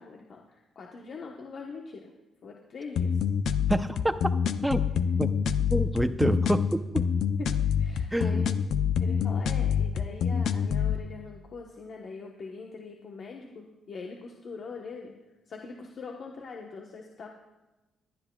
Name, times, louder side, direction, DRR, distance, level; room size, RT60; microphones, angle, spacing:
voice 1, 0.0-2.1 2.4-3.2 7.4-8.5 9.0-15.1 15.5-17.3, left 4 dB, 55° left, 0 dB, 1.1 m, -42 dB
sound 1, 3.0-11.0, left 7 dB, 70° left, 0.5 m, -26 dB
voice 2, 3.7-4.2 4.6-4.8 5.1-5.3 5.7-7.1 8.1-8.5, right 1 dB, 5° right, 10 dB, 0.7 m, -27 dB
22.5 x 10.0 x 2.3 m, 1.1 s
cardioid pair, 90°, 0 cm